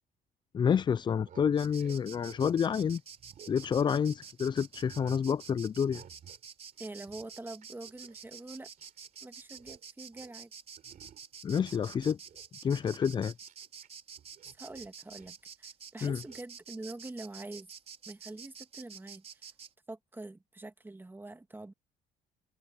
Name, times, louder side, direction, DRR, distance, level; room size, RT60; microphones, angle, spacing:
voice 1, 0.5-3.0 3.5-6.0 11.4-12.2 12.6-13.3 16.0-16.2, left 7 dB, 25° left, 0.4 m, -29 dB
sound 1, 1.0-4.3 4.6-5.3 5.8-6.5 6.7-9.2 9.4-9.8 10.1-10.4 10.8-11.4 11.8-13.9 14.2-15.4 16.2-16.4, right 9 dB, 55° right, 3.7 m, -57 dB
Insect, 1.6-19.7, right 6 dB, 40° right, 5.1 m, -49 dB
voice 2, 6.8-8.7 9.2-10.5 14.4-17.7 18.1-19.4 19.9-21.7, right 2 dB, 10° right, 1.7 m, -45 dB
cardioid pair, 110°, 17 cm